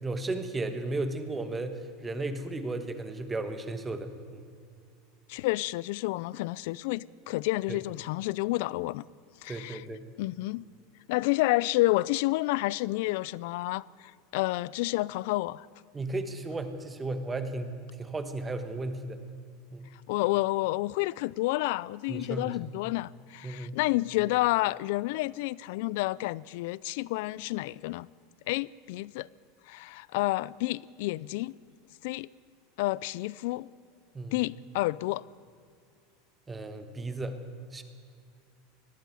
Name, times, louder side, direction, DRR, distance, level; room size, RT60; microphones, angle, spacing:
voice 1, 0.0-4.5 7.7-7.8 9.5-10.0 15.9-17.7 18.0-19.2 19.7-19.9 22.1-22.5 23.4-23.8 34.1-34.3 36.5-37.4 37.7-37.8, right 2 dB, 10° right, 1.2 m, -34 dB
voice 2, 5.3-9.0 9.4-9.8 10.2-10.6 11.1-13.8 14.3-15.7 20.1-28.1 28.5-29.3 29.7-31.6 32.0-32.3 32.8-33.7 34.3-35.2, left 19 dB, 55° left, 0.4 m, -29 dB
20.5 x 14.0 x 9.3 m
supercardioid pair, 175°, 0 cm